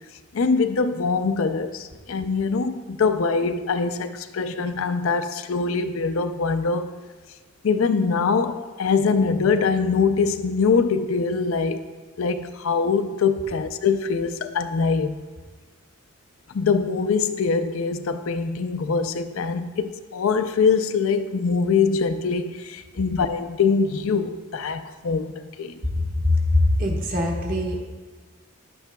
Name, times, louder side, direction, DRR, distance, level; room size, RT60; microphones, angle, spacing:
voice 1, 0.3-6.9 7.6-11.8 12.2-15.1 16.5-25.3 25.6-25.7, left 5 dB, 75° left, 0.4 m, -23 dB
voice 2, 26.1-27.8, left 2 dB, 40° right, 1.2 m, -22 dB
10.0 x 8.4 x 2.3 m
head